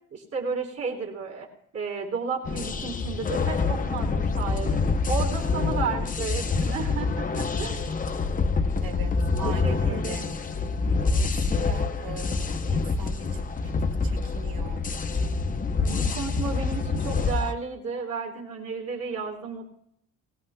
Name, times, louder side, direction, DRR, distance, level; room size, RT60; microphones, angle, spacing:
voice 1, 0.1-1.5 1.7-4.8 5.1-7.9 9.4-10.2 15.8-19.7, right 5 dB, 45° right, -2 dB, 3.6 m, -33 dB
sound 1, 2.5-17.5, left 4 dB, 25° left, 0.6 m, -26 dB
voice 2, 8.8-10.5 11.0-14.9, right 5 dB, 75° right, 4 dB, 2.2 m, -41 dB
23.5 x 18.0 x 2.2 m, 0.71 s
cardioid pair, 175°, 34 cm